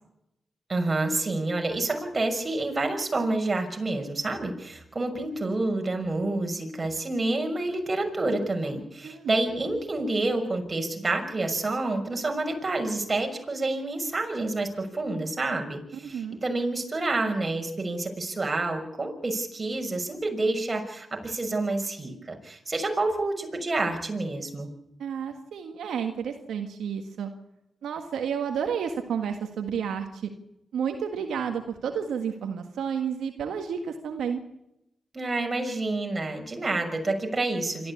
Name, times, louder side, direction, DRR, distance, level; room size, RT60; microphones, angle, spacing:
voice 1, 0.7-24.7 35.1-37.9, right 2 dB, 40° right, 4 dB, 6.0 m, -28 dB
voice 2, 9.0-9.3 16.1-16.4 25.0-27.3 27.8-30.3 30.7-34.4, right 7 dB, 90° right, 5 dB, 1.7 m, -31 dB
26.0 x 14.0 x 8.5 m, 0.85 s
cardioid pair, 50°, 0 cm